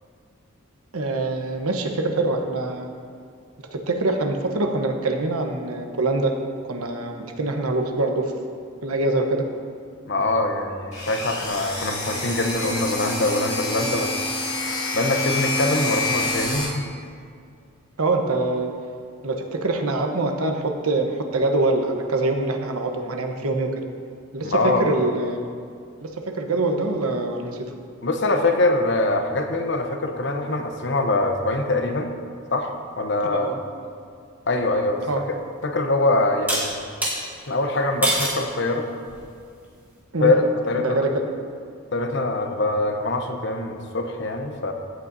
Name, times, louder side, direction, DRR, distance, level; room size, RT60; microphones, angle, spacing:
voice 1, 0.9-2.9 3.7-6.4 6.7-8.3 8.8-9.5 18.0-18.7 19.2-23.7 24.3-25.4 26.0-27.7 33.2-33.6 35.0-35.2 40.1-40.3 40.8-41.3, right 2 dB, 85° right, 4 dB, 1.0 m, -24 dB
voice 2, 10.1-14.1 14.9-16.8 24.4-24.9 28.0-32.1 32.5-33.5 34.5-35.4 35.6-36.7 37.5-38.9 40.2-41.0 41.9-44.7, left 2 dB, 55° left, 5 dB, 0.8 m, -23 dB
sound 1, 10.9-16.6, left 2 dB, 30° left, 2.1 m, -27 dB
sound 2, 35.1-35.2 36.5-37.2 38.0-38.4 39.1-39.5, right 1 dB, 10° right, 1.7 m, -24 dB
15.5 x 8.6 x 2.7 m, 2.3 s
head